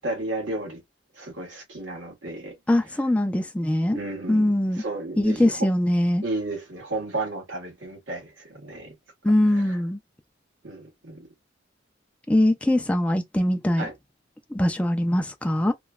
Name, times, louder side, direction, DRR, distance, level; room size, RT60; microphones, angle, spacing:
voice 1, 0.0-0.8 1.1-2.6 2.9-3.0 3.9-5.7 6.2-8.9 9.5-9.8 10.6-11.3 13.8-13.9, right 2 dB, 80° right, 1.4 m, -33 dB
voice 2, 2.7-4.0 4.3-4.8 5.2-6.2 9.2-10.0 12.3-13.9 14.5-15.7, left 1 dB, 5° left, 0.3 m, -22 dB
3.0 x 2.2 x 2.2 m
head